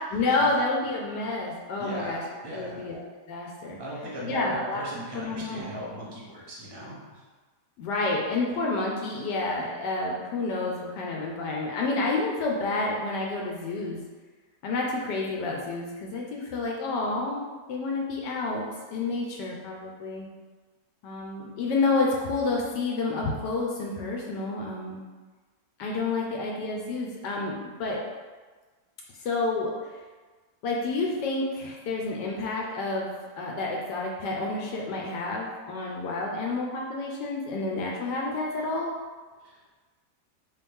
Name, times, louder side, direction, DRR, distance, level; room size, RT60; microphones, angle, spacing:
voice 1, 0.0-2.2 2.5-3.0 3.3-3.8 4.2-4.8 5.1-5.6 7.8-14.0 14.6-17.4 17.7-18.6 18.9-20.3 21.0-25.0 25.8-28.0 29.2-29.7 30.6-38.9, left 3 dB, 75° left, -1 dB, 1.2 m, -29 dB
voice 2, 1.8-2.8 3.8-7.2 39.4-39.6, equal, 20° right, -6 dB, 0.6 m, -38 dB
3.1 x 3.0 x 3.4 m, 1.3 s
omnidirectional pair, 1.9 m